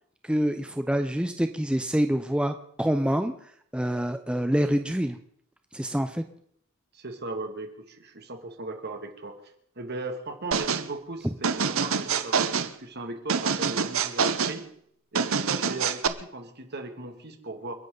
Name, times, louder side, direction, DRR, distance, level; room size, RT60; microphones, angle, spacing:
voice 1, 0.2-3.3 3.7-5.2 5.7-6.2, equal, 5° right, 7 dB, 0.6 m, -26 dB
voice 2, 6.9-9.4 9.8-14.7 15.1-17.7, right 2 dB, 50° right, 5 dB, 2.3 m, -37 dB
sound 1, 10.5-10.9 11.4-12.7 13.3-14.6 15.1-16.1, right 6 dB, 75° right, 1.0 m, -26 dB
29.5 x 11.0 x 3.9 m, 0.69 s
head